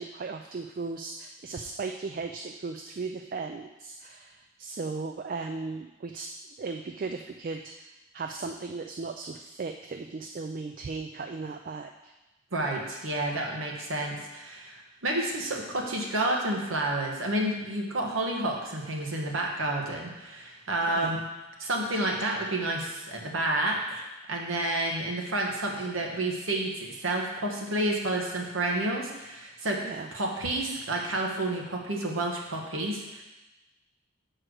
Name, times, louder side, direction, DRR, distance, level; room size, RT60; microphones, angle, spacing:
voice 1, 0.0-6.3 6.6-7.9 8.1-12.1 20.8-21.1 29.8-30.1, right 4 dB, 45° right, 5 dB, 0.3 m, -36 dB
voice 2, 12.5-21.2 21.6-29.8 30.1-33.2, right 1 dB, 85° right, 0 dB, 1.3 m, -30 dB
6.2 x 4.5 x 6.4 m, 1.0 s
head